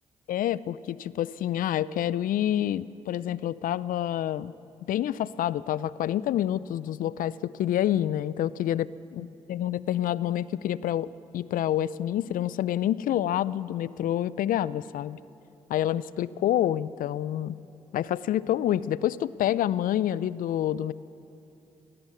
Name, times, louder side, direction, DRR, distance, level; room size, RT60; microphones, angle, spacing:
voice 1, 0.3-4.5 4.9-8.9 9.1-15.2 15.7-17.6 17.9-20.9, left 11 dB, 65° left, 19 dB, 0.5 m, -28 dB
17.5 x 16.5 x 9.6 m, 2.8 s
hypercardioid pair, 40°, 15 cm